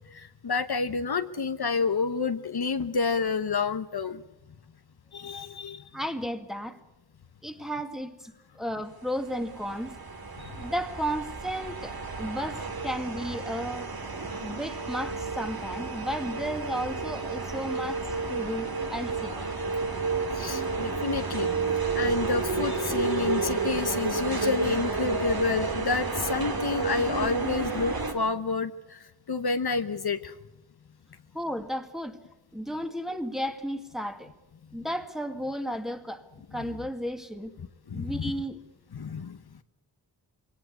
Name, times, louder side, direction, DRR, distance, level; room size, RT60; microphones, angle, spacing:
voice 1, 0.1-4.2 5.1-5.9 10.4-10.5 20.3-21.5 21.9-30.3 37.9-38.3 38.9-39.6, left 4 dB, 65° left, 1.0 m, -29 dB
voice 2, 5.9-6.8 7.4-10.0 10.5-13.9 14.4-19.3 31.3-32.2 32.5-34.3 34.7-36.2 36.5-37.6 37.9-38.6, equal, ahead, 2.0 m, -33 dB
sound 1, 9.2-28.1, right 3 dB, 55° right, 2.9 m, -31 dB
22.5 x 18.0 x 8.3 m
wide cardioid pair, 65°, 42 cm